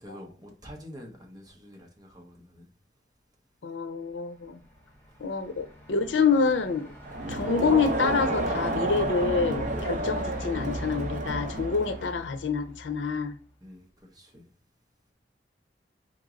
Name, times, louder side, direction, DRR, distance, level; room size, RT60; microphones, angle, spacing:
voice 1, 0.0-2.7 13.6-14.5, equal, 20° right, 1.0 m, -47 dB
voice 2, 3.6-4.6 5.2-6.9 7.3-13.4, left 5 dB, 85° left, 0.6 m, -27 dB
Truck, 4.1-13.4, equal, 10° left, 1.1 m, -42 dB
Crowd, 7.0-12.2, right 2 dB, 45° right, 0.7 m, -31 dB
4.4 x 3.1 x 3.7 m
head